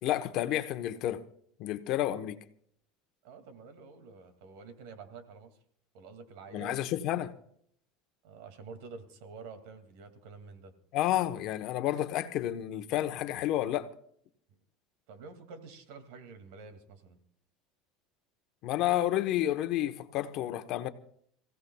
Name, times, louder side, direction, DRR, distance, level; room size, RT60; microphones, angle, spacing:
voice 1, 0.0-1.2 1.6-2.4 6.5-7.3 10.9-13.9 18.6-20.9, left 13 dB, 50° left, 1.0 m, -30 dB
voice 2, 3.2-5.6 5.9-6.8 8.2-10.7 15.1-17.2, right 4 dB, 75° right, 2.3 m, -48 dB
28.0 x 16.5 x 2.3 m
cardioid pair, 150°, 0 cm